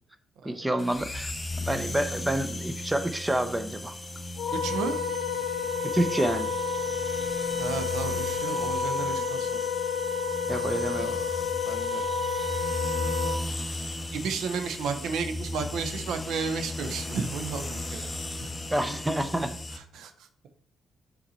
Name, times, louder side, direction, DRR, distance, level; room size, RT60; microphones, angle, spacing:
voice 1, 0.4-3.9 5.8-6.5 10.5-11.1 18.7-19.5, right 1 dB, 10° right, 10 dB, 0.8 m, -28 dB
sound 1, 0.8-19.8, left 2 dB, 20° left, 0.8 m, -36 dB
Wind instrument woodwind instrument, 4.4-13.4, left 5 dB, 85° left, 0.6 m, -30 dB
voice 2, 4.5-4.9 7.6-9.7 10.8-12.1 14.1-18.5 19.7-20.3, right 5 dB, 80° right, 8 dB, 1.0 m, -33 dB
5.6 x 4.4 x 4.3 m, 0.63 s
cardioid pair, 90°, 0 cm